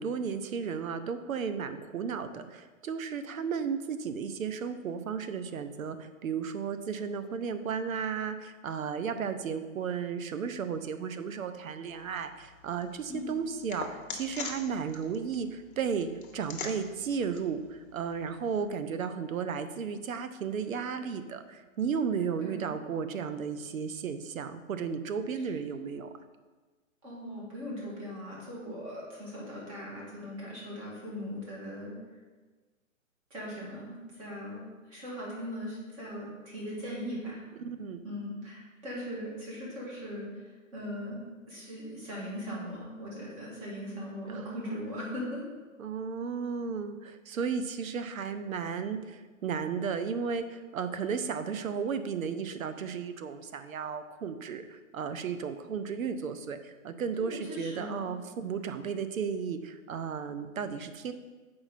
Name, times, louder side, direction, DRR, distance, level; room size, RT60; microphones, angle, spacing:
voice 1, 0.0-26.1 37.6-38.0 44.3-44.8 45.8-61.1, right 6 dB, 85° right, 10 dB, 0.7 m, -34 dB
sound 1, 11.9-18.7, left 5 dB, 40° left, 0.9 m, -45 dB
voice 2, 27.0-31.9 33.3-37.4 38.0-40.4 40.7-41.2 41.5-45.5 57.1-58.1, equal, 25° right, -5 dB, 1.8 m, -39 dB
7.2 x 4.8 x 4.1 m, 1.3 s
hypercardioid pair, 165°, 40 cm